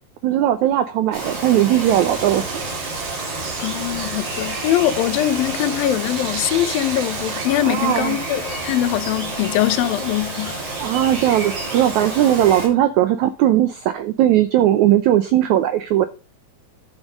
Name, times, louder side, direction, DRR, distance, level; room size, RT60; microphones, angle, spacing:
voice 1, 0.2-2.5 7.6-8.2 10.8-16.1, right 12 dB, 85° right, 1.6 m, -18 dB
Bird vocalization bird call bird song, 1.1-12.7, right 2 dB, 70° right, 6.4 m, -29 dB
sound 1, 1.8-7.5, right 5 dB, 55° right, 2.8 m, -34 dB
voice 2, 3.6-10.6, left 13 dB, 80° left, 2.6 m, -22 dB
11.5 x 6.2 x 5.1 m
omnidirectional pair, 4.2 m